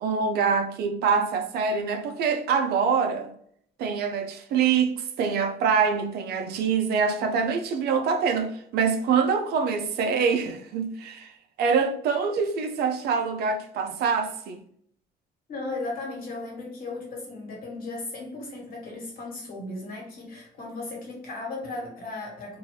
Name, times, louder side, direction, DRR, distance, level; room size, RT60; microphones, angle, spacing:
voice 1, 0.0-3.3 3.8-11.3 11.6-14.6, right 6 dB, 70° right, 0.5 m, -25 dB
voice 2, 15.5-22.6, left 2 dB, 60° left, 1.4 m, -36 dB
2.7 x 2.6 x 3.1 m
cardioid pair, 110°, 17 cm